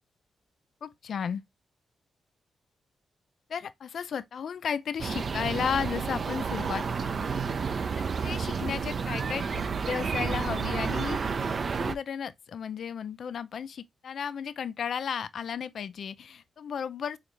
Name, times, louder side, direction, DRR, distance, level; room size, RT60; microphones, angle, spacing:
voice 1, 0.8-1.4 3.5-11.2 11.8-17.2, left 7 dB, 65° left, 0.3 m, -34 dB
sound 1, 5.0-11.9, right 5 dB, 55° right, 0.3 m, -30 dB
4.1 x 2.4 x 3.0 m
hypercardioid pair, 40°, 0 cm